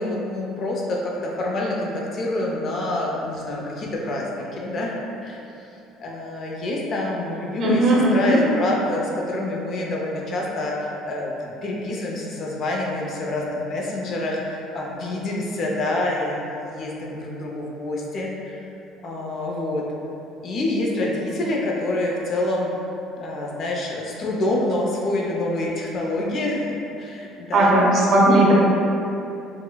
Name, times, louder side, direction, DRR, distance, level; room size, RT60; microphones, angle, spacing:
voice 1, 0.0-5.4 6.0-7.8 8.1-18.6 19.0-19.9 20.4-22.7 23.2-27.8, left 1 dB, 50° left, -2 dB, 0.5 m, -27 dB
voice 2, 7.6-8.4 27.5-28.5, right 1 dB, 50° right, -4 dB, 0.6 m, -17 dB
3.7 x 2.0 x 2.2 m, 2.8 s
supercardioid pair, 95°, 0 cm